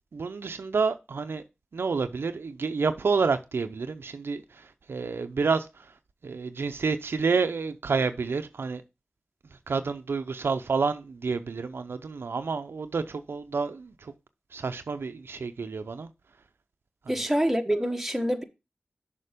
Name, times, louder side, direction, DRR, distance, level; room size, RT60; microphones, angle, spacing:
voice 1, 0.1-1.4 1.7-5.9 6.2-8.8 9.7-14.1 14.5-16.1 17.1-17.2, right 4 dB, 75° right, 0.6 m, -29 dB
voice 2, 17.1-18.4, equal, 5° right, 1.3 m, -26 dB
6.7 x 5.2 x 5.0 m
cardioid pair, 45°, 4 cm